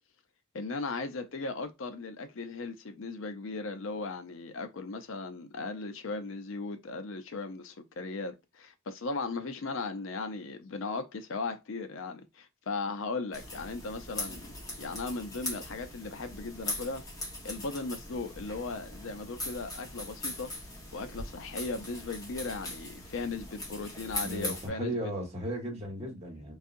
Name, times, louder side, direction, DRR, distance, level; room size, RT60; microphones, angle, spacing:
voice 1, 0.5-14.5 14.8-17.0 17.4-20.5 20.9-24.9, left 3 dB, 70° left, 0.5 m, -37 dB
sound 1, 13.3-24.7, left 1 dB, 15° left, 1.3 m, -40 dB
voice 2, 24.2-26.5, right 1 dB, 30° right, 1.4 m, -36 dB
3.9 x 2.7 x 2.5 m
head